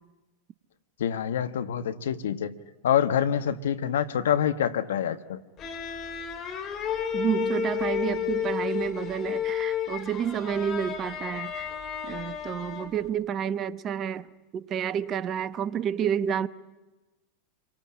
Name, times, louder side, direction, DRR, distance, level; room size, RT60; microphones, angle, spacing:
voice 1, 1.0-2.6 2.8-5.4, left 9 dB, 75° left, 11 dB, 1.3 m, -26 dB
sound 1, 5.6-13.1, left 8 dB, 35° left, 3.3 m, -32 dB
voice 2, 7.1-11.7 12.0-14.3 14.5-16.5, right 8 dB, 35° right, 15 dB, 1.0 m, -29 dB
27.5 x 24.0 x 8.7 m, 1.1 s
hypercardioid pair, 95°, 0 cm